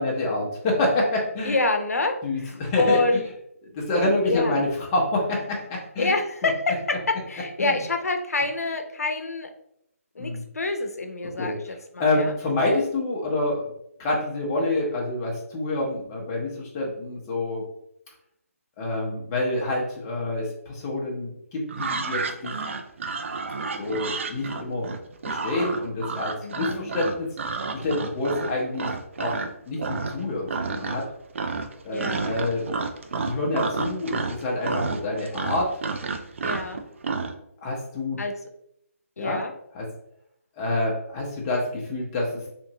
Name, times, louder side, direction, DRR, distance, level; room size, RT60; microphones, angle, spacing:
voice 1, 0.0-1.6 2.2-3.2 3.7-6.1 7.6-7.8 10.2-10.4 11.4-13.7 14.0-17.6 18.8-22.5 23.8-24.9 25.2-27.3 27.8-28.9 29.2-31.0 31.8-32.6 33.2-35.7 37.6-38.2 39.2-39.4 39.7-39.9 40.6-42.3, left 2 dB, 20° left, -2 dB, 0.7 m, -27 dB
voice 2, 1.5-2.2 2.4-3.3 4.3-4.6 6.0-6.7 7.3-9.5 10.2-12.3 26.4-26.9 31.9-32.3 36.4-36.8 38.2-38.3 39.2-39.5, left 2 dB, 85° left, 5 dB, 0.5 m, -27 dB
sound 1, 21.7-29.5 29.8-30.2 30.5-31.1 31.3-37.3, right 4 dB, 55° right, 0.3 m, -30 dB
2.9 x 2.6 x 2.7 m, 0.76 s
figure-of-eight pair, 155°, 8 cm